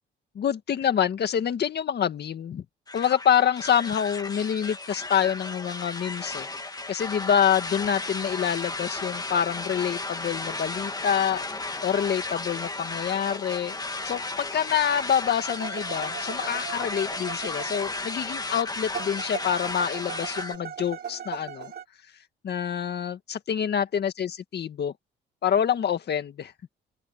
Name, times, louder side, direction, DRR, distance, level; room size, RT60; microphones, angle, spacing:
voice 1, 0.4-2.6 2.9-6.5 6.9-11.5 11.8-13.8 14.0-21.7 22.4-24.9 25.4-26.5, left 8 dB, 55° left, 2.0 m, -26 dB
sound 1, 2.9-20.6, left 3 dB, 20° left, 2.3 m, -34 dB
sound 2, 15.4-18.4 18.9-21.8, right 8 dB, 55° right, 5.0 m, -39 dB
open air
cardioid pair, 90°, 20 cm